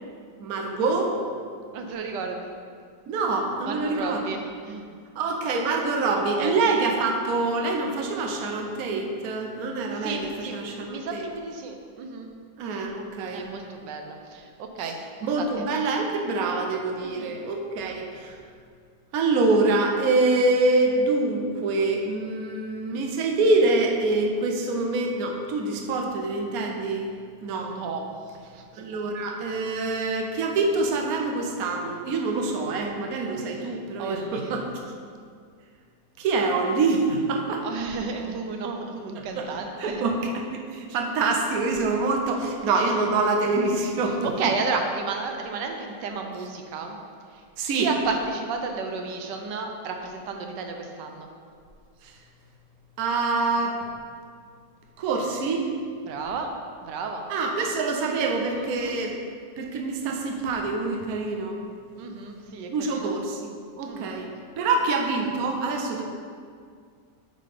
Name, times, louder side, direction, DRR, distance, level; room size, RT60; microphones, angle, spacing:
voice 1, 0.4-1.1 3.1-4.2 5.1-11.2 12.6-13.4 14.8-14.9 15.2-18.4 19.1-27.1 27.4-27.7 28.7-34.6 36.2-37.7 39.3-39.4 39.8-44.3 47.6-47.9 52.0-52.2 53.0-53.9 55.0-55.7 57.3-59.2 59.6-61.6 62.7-63.5 63.8-64.3 64.6-66.0, right 3 dB, 60° right, 1 dB, 1.2 m, -25 dB
voice 2, 1.7-2.5 3.6-5.0 6.1-6.6 9.9-12.3 13.3-15.0 15.4-15.6 17.0-17.3 27.7-28.0 28.4-28.6 33.6-34.5 37.6-40.0 42.7-43.1 44.0-47.0 47.3-51.3 56.0-56.5 56.8-57.3 58.5-59.0 62.0-63.2 63.8-64.1, right 4 dB, 85° right, 4 dB, 1.4 m, -33 dB
9.2 x 3.8 x 5.0 m, 2.1 s
omnidirectional pair, 1.8 m